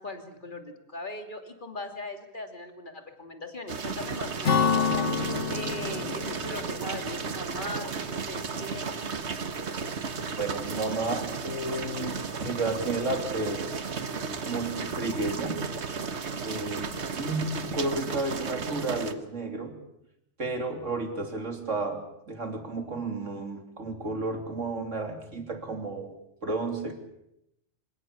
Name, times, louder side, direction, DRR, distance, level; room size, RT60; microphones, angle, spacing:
voice 1, 0.0-5.1 5.5-9.1, left 2 dB, 40° left, 5 dB, 3.0 m, -39 dB
sound 1, 3.7-19.1, right 5 dB, 65° right, 1.7 m, -34 dB
Acoustic guitar / Strum, 4.4-8.1, left 6 dB, 75° left, 2.1 m, -29 dB
voice 2, 10.4-13.9 14.4-15.7 16.4-19.8 20.4-26.2 26.4-26.9, right 2 dB, 90° right, 5 dB, 3.5 m, -32 dB
26.5 x 17.0 x 8.5 m, 0.82 s
omnidirectional pair, 1.2 m